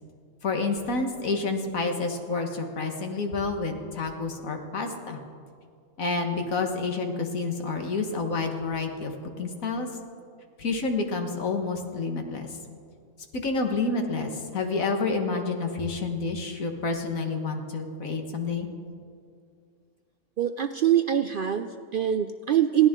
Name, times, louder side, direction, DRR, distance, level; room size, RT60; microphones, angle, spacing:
voice 1, 0.4-5.2 6.0-9.9 10.6-12.6 13.3-18.7, left 3 dB, 85° left, 4 dB, 1.9 m, -29 dB
voice 2, 20.4-22.9, right 10 dB, 70° right, 9 dB, 0.5 m, -24 dB
21.0 x 15.5 x 3.7 m, 2.2 s
omnidirectional pair, 1.4 m